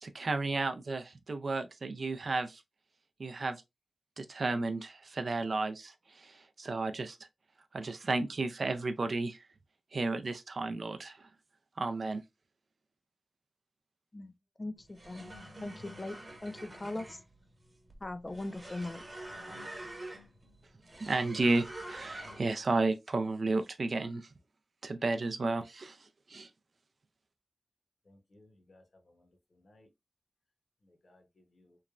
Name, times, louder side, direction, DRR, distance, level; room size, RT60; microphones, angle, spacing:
voice 1, 0.0-2.6 3.2-3.6 4.2-7.2 7.7-9.4 9.9-11.3 11.8-12.2 21.0-24.3 24.8-26.0 26.3-26.5, right 3 dB, 65° right, 0.3 m, -33 dB
voice 2, 14.6-15.3 15.6-16.2 16.4-16.5 16.8-17.1 18.0-19.0, left 2 dB, 30° left, 0.4 m, -39 dB
sound 1, 14.8-22.6, right 1 dB, 35° right, 1.0 m, -46 dB
voice 3, 28.0-29.9 30.8-31.8, left 1 dB, 60° left, 0.8 m, -63 dB
3.1 x 2.1 x 2.4 m
wide cardioid pair, 90°, 0 cm